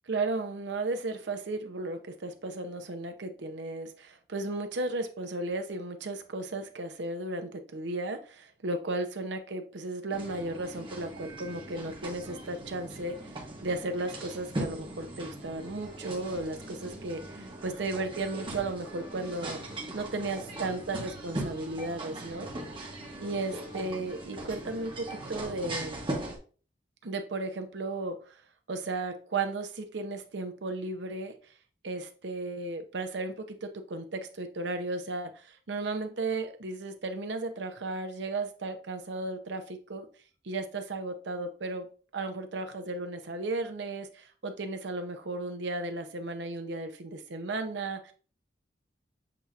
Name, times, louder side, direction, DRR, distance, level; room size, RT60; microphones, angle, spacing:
voice 1, 0.1-13.3 13.6-19.6 19.9-22.5 23.2-26.0 27.0-28.3 28.7-31.3 31.8-40.1 40.4-41.9 42.1-48.1, right 2 dB, 70° right, 6 dB, 0.7 m, -35 dB
sound 1, 10.1-26.4, right 1 dB, 30° right, 1.0 m, -40 dB
7.5 x 2.8 x 2.4 m, 0.39 s
head